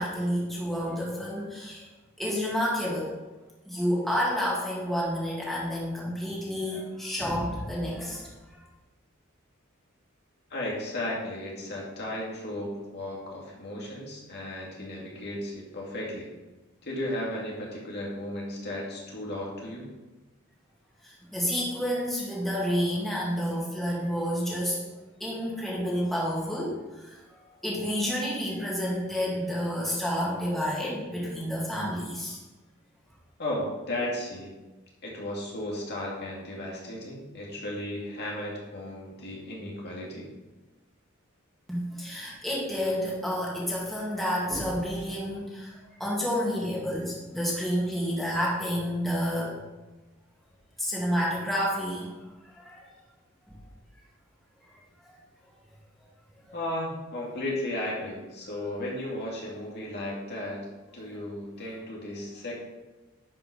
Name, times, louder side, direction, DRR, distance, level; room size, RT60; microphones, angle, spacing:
voice 1, 0.0-1.9 2.2-3.2 3.7-8.3 21.0-24.8 25.2-32.4 41.7-49.5 50.8-52.1 52.4-52.9 53.5-53.6 55.0-55.2, equal, ahead, -5 dB, 2.3 m, -30 dB
voice 2, 10.5-16.3 16.8-19.9 33.4-34.5 35.0-40.3 56.5-60.7 60.9-62.5, left 1 dB, 50° left, -3 dB, 2.4 m, -35 dB
11.0 x 5.7 x 5.3 m, 1.1 s
head